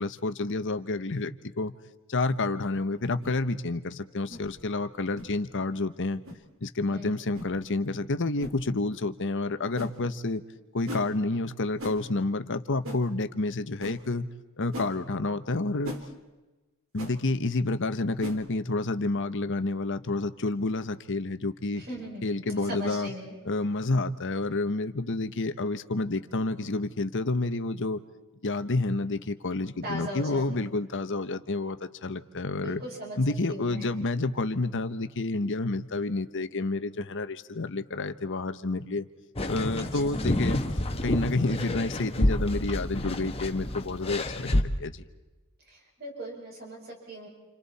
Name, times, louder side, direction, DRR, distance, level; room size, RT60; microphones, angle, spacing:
voice 1, 0.0-1.7 2.1-6.2 6.6-10.4 10.7-14.3 14.6-15.9 16.9-21.8 22.2-23.1 23.4-28.0 28.4-32.8 33.2-39.0 39.5-40.6 41.0-45.0, left 2 dB, 60° left, 10 dB, 1.1 m, -29 dB
sound 1, 3.2-3.4 4.3-4.5 5.1-5.3 6.2-6.4 7.3-7.5 8.4-8.6 9.7-9.9 10.9-11.1 11.8-12.0 12.8-13.0 13.8-14.0 14.7-14.9 15.8-16.0 17.0-17.1 18.2-18.4, equal, 65° right, 3.0 m, -38 dB
voice 2, 21.7-23.4 29.8-30.7 32.6-33.2 33.5-33.9 39.9-40.1 45.7-47.3, equal, 45° right, -1 dB, 7.0 m, -39 dB
sound 2, 39.4-44.6, left 1 dB, 25° left, 1.4 m, -29 dB
30.0 x 29.0 x 4.3 m, 1.1 s
head